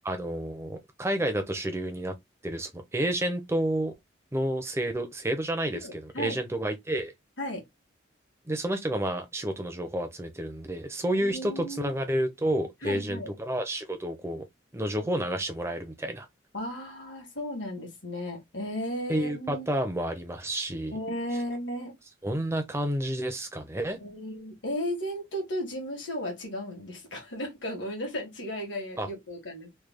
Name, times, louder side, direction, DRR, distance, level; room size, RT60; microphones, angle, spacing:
voice 1, 0.0-2.1 2.4-3.9 4.3-7.1 8.5-14.4 14.7-16.3 19.1-20.9 22.2-24.0 29.0-29.1, right 1 dB, 15° right, 0.5 m, -30 dB
voice 2, 5.8-6.4 7.4-7.6 11.1-11.9 12.8-13.3 16.5-19.7 20.9-21.9 24.0-29.7, equal, 70° left, 1.4 m, -35 dB
3.3 x 2.2 x 3.4 m
head